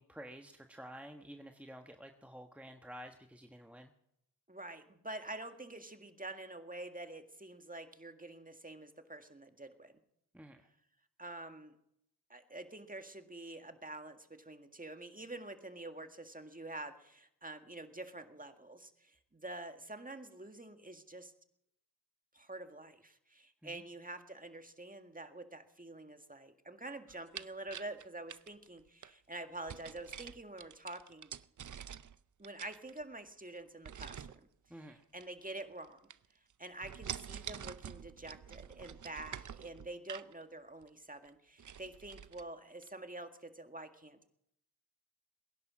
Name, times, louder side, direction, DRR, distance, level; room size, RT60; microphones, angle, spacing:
voice 1, 0.0-3.9 10.3-10.7 23.6-23.8 34.7-35.0, equal, 5° right, 4 dB, 1.3 m, -51 dB
voice 2, 4.5-9.9 11.2-11.7 12.3-21.3 22.3-31.3 32.4-34.5 35.1-36.1 36.6-44.3, right 2 dB, 20° right, 7 dB, 1.9 m, -47 dB
sound 1, 27.1-29.1 29.7-32.2 32.4-33.3 33.8-34.4 35.1-35.9 36.1-36.5 36.8-40.3 40.8-40.9 41.2-41.3 41.6-42.4 42.8-42.9, right 8 dB, 50° right, 0.6 m, -47 dB
20.5 x 11.0 x 6.3 m, 0.76 s
cardioid pair, 40°, 40 cm